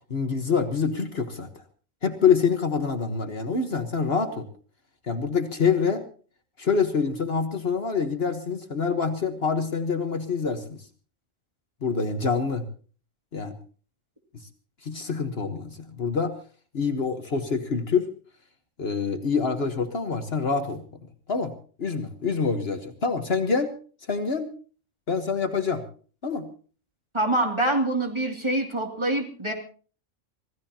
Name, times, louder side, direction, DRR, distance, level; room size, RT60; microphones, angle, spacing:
voice 1, 0.1-1.6 2.0-4.5 5.1-6.0 6.6-10.8 11.8-12.6 13.3-13.6 14.8-16.3 16.7-18.1 18.8-20.8 21.3-21.5 21.8-23.7 24.1-24.5 25.1-25.8 26.2-26.5, left 5 dB, 50° left, 7 dB, 1.5 m, -26 dB
voice 2, 27.1-29.5, right 1 dB, 20° right, 3 dB, 2.7 m, -25 dB
25.5 x 16.0 x 2.9 m, 0.40 s
omnidirectional pair, 1.3 m